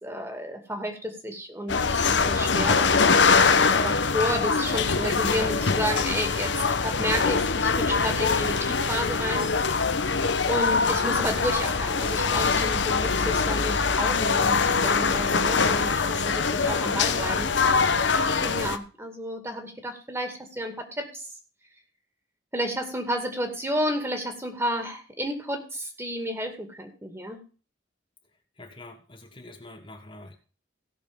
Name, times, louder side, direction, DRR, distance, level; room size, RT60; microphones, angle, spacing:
voice 1, 0.0-1.8 2.1-6.5 6.8-9.9 10.4-17.5 18.4-21.3 22.5-27.4, equal, 15° right, 5 dB, 2.3 m, -31 dB
sound 1, 1.7-18.8, left 5 dB, 90° left, 1.0 m, -23 dB
voice 2, 28.6-30.4, left 1 dB, 30° left, 4 dB, 1.3 m, -45 dB
16.5 x 6.3 x 5.3 m, 0.37 s
head